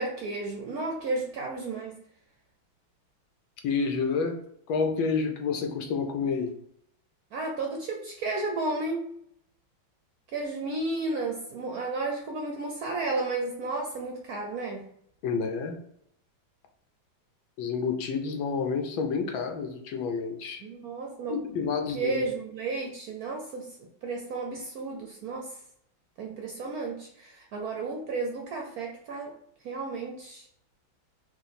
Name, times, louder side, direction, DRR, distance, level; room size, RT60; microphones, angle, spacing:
voice 1, 0.0-2.0 7.3-9.1 10.3-14.8 20.6-25.6 26.2-29.3 29.6-30.5, right 3 dB, 65° right, 1 dB, 0.9 m, -33 dB
voice 2, 3.6-4.3 4.7-6.5 15.2-15.8 17.6-20.6 21.3-22.3, left 5 dB, 80° left, 4 dB, 1.5 m, -29 dB
4.8 x 2.5 x 4.1 m, 0.69 s
omnidirectional pair, 2.2 m